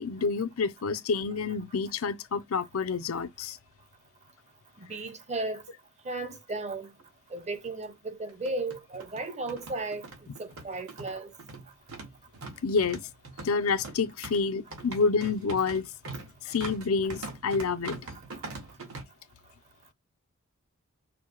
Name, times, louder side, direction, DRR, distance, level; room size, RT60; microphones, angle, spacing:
voice 1, 0.0-3.6 12.6-13.0 13.4-15.8 16.5-18.0, left 4 dB, 80° left, 0.6 m, -28 dB
voice 2, 4.8-5.6 6.0-6.9 7.3-10.1 10.4-11.3, right 2 dB, 35° right, 0.8 m, -35 dB
sound 1, 7.0-7.1 7.4-7.5 8.3-19.0, right 3 dB, 75° right, 1.5 m, -42 dB
6.0 x 2.1 x 3.0 m
head